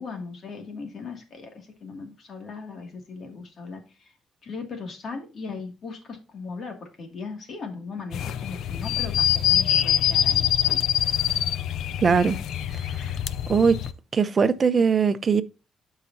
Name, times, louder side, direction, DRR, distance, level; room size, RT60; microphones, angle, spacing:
voice 1, 0.0-4.1 4.4-10.5, left 4 dB, 55° left, 2.3 m, -38 dB
sound 1, 8.1-13.9, left 10 dB, 80° left, 0.5 m, -24 dB
voice 2, 12.0-12.4 13.5-13.8 14.1-15.4, right 5 dB, 40° right, 0.7 m, -20 dB
12.0 x 4.9 x 2.7 m
cardioid pair, 90°, 0 cm